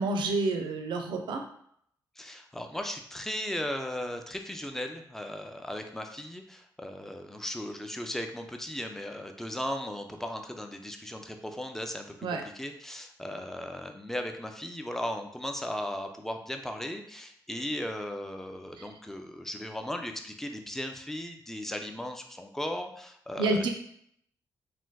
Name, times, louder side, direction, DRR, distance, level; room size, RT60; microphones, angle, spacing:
voice 1, 0.0-1.4 12.2-12.4 18.8-18.9 23.4-23.7, right 2 dB, 85° right, 4 dB, 0.4 m, -28 dB
voice 2, 2.2-23.7, left 1 dB, 5° left, 5 dB, 0.3 m, -37 dB
3.3 x 2.5 x 2.2 m, 0.67 s
cardioid pair, 85°, 8 cm